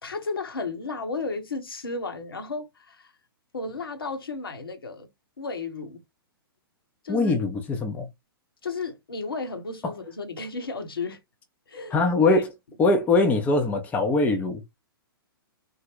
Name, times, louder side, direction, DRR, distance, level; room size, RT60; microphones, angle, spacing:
voice 1, 0.0-3.1 3.5-5.1 5.4-6.0 7.0-7.3 8.6-11.2 11.7-12.0 12.3-12.4, left 3 dB, 70° left, 1.0 m, -33 dB
voice 2, 7.1-8.1 9.8-9.9 11.9-12.5 12.8-14.6, left 3 dB, 10° left, 0.6 m, -22 dB
3.8 x 2.1 x 3.0 m
figure-of-eight pair, 115°, 12 cm